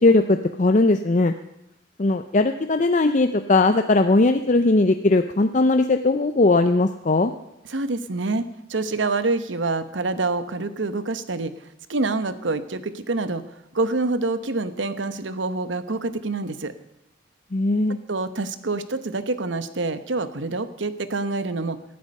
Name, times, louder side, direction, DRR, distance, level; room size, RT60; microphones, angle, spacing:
voice 1, 0.0-1.3 2.0-7.3 17.5-18.0, left 2 dB, 40° left, 8 dB, 0.6 m, -19 dB
voice 2, 7.7-13.4 13.7-16.7 17.9-21.8, right 3 dB, 80° right, 12 dB, 1.0 m, -26 dB
19.0 x 12.0 x 5.4 m, 0.84 s
head